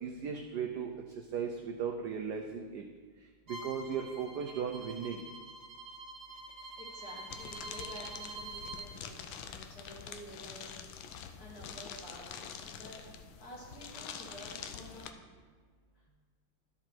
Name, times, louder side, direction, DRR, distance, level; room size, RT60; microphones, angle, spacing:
voice 1, 0.0-0.9 1.3-2.8 3.5-5.2, right 7 dB, 80° right, 4 dB, 0.9 m, -36 dB
Bowed string instrument, 3.5-8.9, right 2 dB, 35° right, 1.1 m, -46 dB
voice 2, 6.8-10.8 11.4-15.1, equal, 45° left, -4 dB, 2.2 m, -50 dB
sound 1, 7.3-15.1, left 7 dB, 75° left, 1.2 m, -46 dB
12.0 x 5.0 x 4.5 m, 1.5 s
omnidirectional pair, 2.4 m